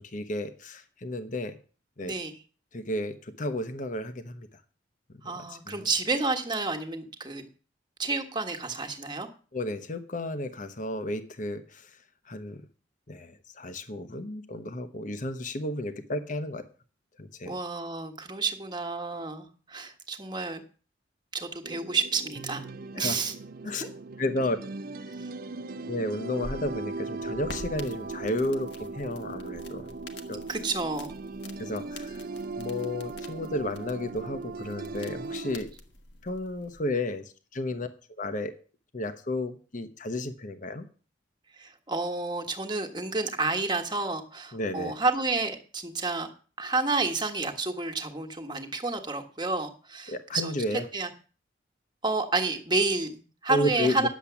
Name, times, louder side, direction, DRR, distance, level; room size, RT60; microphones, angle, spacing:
voice 1, 0.0-1.6 2.0-2.1 2.7-4.5 5.2-5.8 9.5-11.9 12.3-12.6 13.1-16.7 17.2-17.6 22.9-23.1 23.6-23.9 24.2-24.6 25.9-30.0 30.3-30.4 31.6-32.2 32.6-35.7 36.2-37.9 38.2-38.5 38.9-40.8 44.5-44.9 50.1-50.8 53.5-54.1, left 1 dB, 45° left, 9 dB, 1.0 m, -32 dB
voice 2, 5.2-7.4 8.0-9.3 17.5-20.6 21.3-22.6 23.0-23.3 23.8-23.9 30.5-31.2 41.6-46.3 46.6-51.1 52.0-54.1, right 3 dB, 25° right, 6 dB, 1.5 m, -30 dB
sound 1, 21.6-35.6, right 3 dB, 50° right, 0.5 m, -38 dB
sound 2, 26.2-36.8, left 2 dB, 65° left, 1.5 m, -47 dB
10.5 x 7.4 x 7.1 m, 0.39 s
head